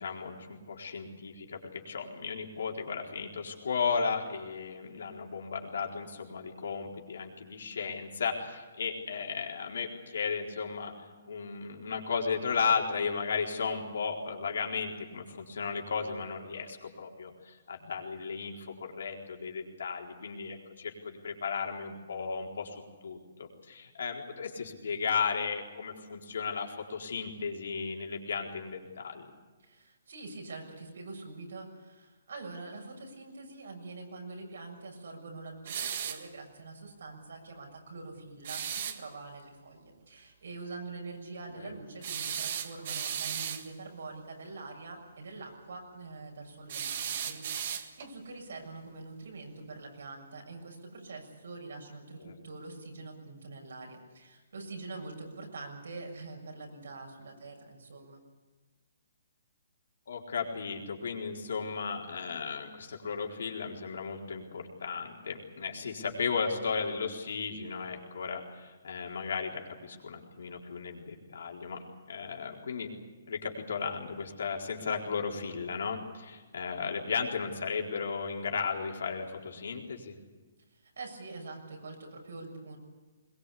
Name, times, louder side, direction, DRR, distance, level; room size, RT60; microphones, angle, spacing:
voice 1, 0.0-29.3 41.6-41.8 52.2-52.3 60.1-71.8 72.1-72.9 73.3-80.1, left 5 dB, 75° left, 1 dB, 4.2 m, -35 dB
voice 2, 29.6-58.2 80.7-82.8, right 3 dB, 80° right, 2 dB, 6.9 m, -45 dB
sound 1, 35.7-36.3 38.4-39.0 42.0-43.7 46.7-48.1, right 8 dB, 50° right, 1.6 m, -35 dB
21.5 x 20.0 x 8.5 m, 1.3 s
hypercardioid pair, 160°, 0 cm